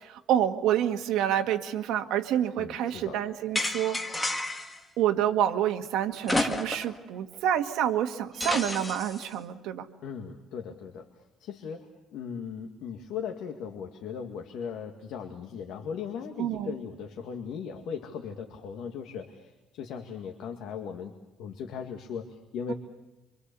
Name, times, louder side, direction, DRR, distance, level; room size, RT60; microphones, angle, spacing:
voice 1, 0.0-4.0 5.0-9.9 16.4-16.7 22.7-22.8, right 10 dB, 75° right, 6 dB, 1.8 m, -28 dB
voice 2, 2.5-3.2 10.0-21.1 21.4-22.7, left 7 dB, 65° left, 3 dB, 2.1 m, -38 dB
sound 1, 3.5-4.8 6.2-7.0 7.3-7.4 8.4-9.2, left 2 dB, 10° left, 1.7 m, -30 dB
28.5 x 25.5 x 7.0 m, 1.0 s
cardioid pair, 175°, 0 cm